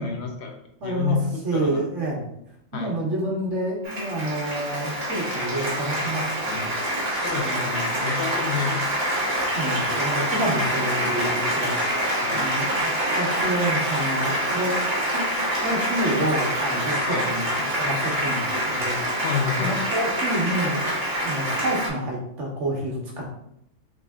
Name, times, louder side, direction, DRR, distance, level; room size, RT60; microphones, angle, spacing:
voice 1, 0.0-1.8 2.7-3.0 7.2-8.9 10.6-10.7 12.2-12.5 17.1-17.3 19.2-19.8, left 6 dB, 65° left, 2 dB, 0.8 m, -29 dB
voice 2, 0.8-1.2 1.4-2.3 2.7-6.7 7.3-7.9 9.5-11.8 12.3-14.7 15.1-15.2 15.6-19.2 19.6-20.8 21.2-23.4, right 1 dB, 65° right, -1 dB, 1.3 m, -28 dB
Applause, 3.8-21.9, right 1 dB, 50° right, 1.5 m, -26 dB
3.6 x 3.2 x 3.5 m, 0.75 s
omnidirectional pair, 1.4 m